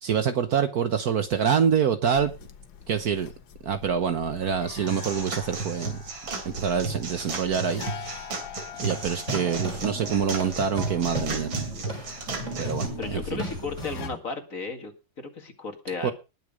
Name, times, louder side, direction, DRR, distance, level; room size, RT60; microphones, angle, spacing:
voice 1, 0.0-2.3 2.9-3.3 3.6-6.0 6.4-8.2 8.8-11.7 12.6-13.4 16.0-16.1, right 7 dB, 55° right, 1.3 m, -26 dB
sound 1, 2.1-14.1, left 7 dB, 75° left, 1.9 m, -42 dB
sound 2, 4.9-12.9, right 4 dB, 80° right, 3.5 m, -34 dB
sound 3, 8.7-14.1, right 1 dB, 35° right, 5.4 m, -35 dB
voice 2, 13.0-14.9 15.2-16.1, left 4 dB, 45° left, 2.3 m, -34 dB
19.5 x 6.6 x 5.1 m
omnidirectional pair, 2.1 m